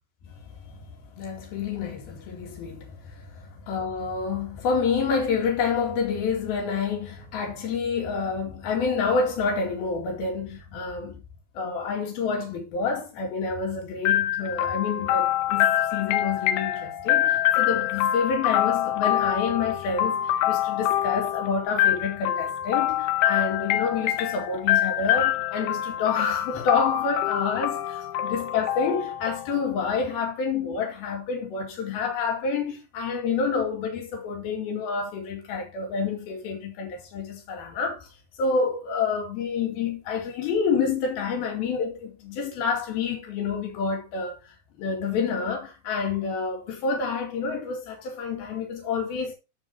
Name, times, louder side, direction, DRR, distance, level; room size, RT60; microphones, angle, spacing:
voice 1, 0.3-11.2 11.6-38.1 38.4-49.4, left 5 dB, 60° left, 4.0 m, -28 dB
sound 1, 14.1-29.8, left 12 dB, 80° left, 2.8 m, -25 dB
14.0 x 4.9 x 3.0 m
omnidirectional pair, 5.1 m